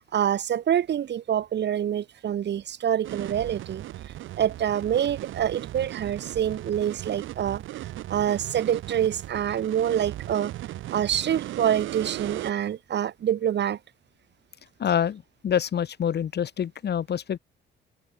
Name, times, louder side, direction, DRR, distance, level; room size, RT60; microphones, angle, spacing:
voice 1, 0.0-3.8 4.4-7.6 8.1-10.5 10.9-13.8, right 10 dB, 60° right, 2.3 m, -26 dB
sound 1, 3.0-12.5, right 14 dB, 80° right, 1.6 m, -37 dB
voice 2, 14.8-17.4, left 8 dB, 55° left, 3.9 m, -26 dB
cardioid pair, 90°, 20 cm